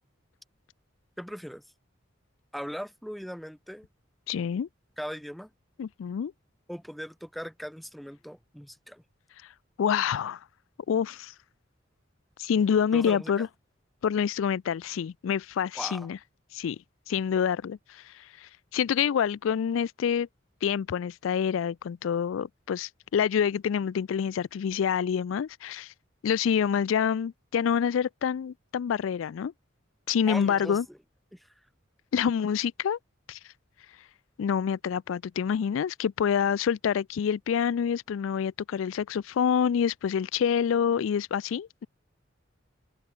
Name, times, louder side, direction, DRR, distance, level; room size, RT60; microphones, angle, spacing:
voice 1, 1.2-1.6 2.5-3.9 5.0-5.5 6.7-9.0 12.9-13.5 15.8-16.1 30.3-30.8 31.3-31.5, equal, ahead, 1.0 m, -39 dB
voice 2, 4.3-4.7 5.8-6.3 9.8-10.4 10.9-11.3 12.4-13.5 14.0-16.2 16.5-16.8 17.1-20.3 20.6-25.9 26.2-29.5 30.1-30.8 32.1-33.0 33.3-33.4 34.4-41.9, left 7 dB, 85° left, 0.4 m, -27 dB
head